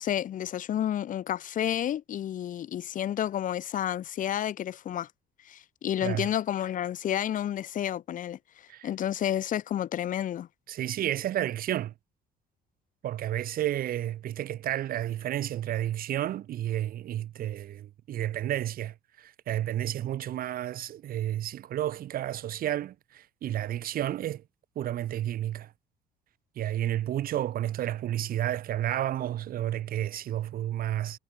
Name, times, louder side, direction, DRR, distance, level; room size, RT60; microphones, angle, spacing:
voice 1, 0.0-5.1 5.4-8.4 8.8-10.5, left 11 dB, 50° left, 1.1 m, -30 dB
voice 2, 10.7-11.9 13.0-24.4 24.7-25.7 26.6-31.2, right 12 dB, 60° right, 1.3 m, -31 dB
cardioid pair, 110°, 17 cm